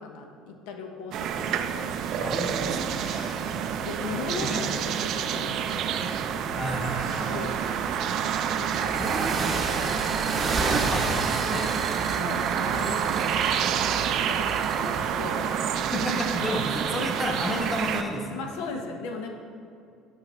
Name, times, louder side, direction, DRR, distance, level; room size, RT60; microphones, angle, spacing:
voice 1, 0.0-2.4 3.8-6.1 7.2-7.6 8.6-8.9 12.1-15.6 18.3-19.3, left 4 dB, 85° left, 3 dB, 0.7 m, -38 dB
sound 1, 1.1-18.0, right 8 dB, 60° right, 0.4 m, -28 dB
voice 2, 2.2-3.1 4.1-4.6 6.5-7.8 8.9-9.3 10.5-11.9 15.9-18.4, equal, 10° left, 0 dB, 0.9 m, -32 dB
sound 2, 2.5-3.7 6.4-8.0 10.3-10.4 10.8-12.4, left 2 dB, 55° left, 0.8 m, -43 dB
sound 3, 8.7-15.0, right 4 dB, 35° right, 0.7 m, -31 dB
8.3 x 5.7 x 3.1 m, 2.4 s
cardioid pair, 120°, 0 cm